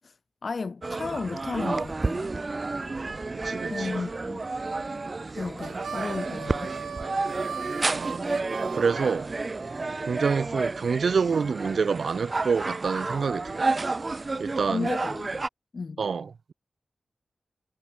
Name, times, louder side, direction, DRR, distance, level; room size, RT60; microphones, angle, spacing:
voice 1, 0.4-2.3 3.5-4.4 5.3-6.7 14.7-15.4 15.7-16.0, left 4 dB, 45° left, 1.3 m, -34 dB
sound 1, 0.8-15.5, right 3 dB, 30° right, 3.7 m, -31 dB
voice 2, 3.4-3.9 7.9-8.2 8.7-9.3 10.1-13.6 14.4-14.9 16.0-16.5, right 5 dB, 60° right, 2.1 m, -27 dB
Harmonica, 5.6-9.9, right 6 dB, 90° right, 1.1 m, -38 dB
wide cardioid pair, 175°, 0 cm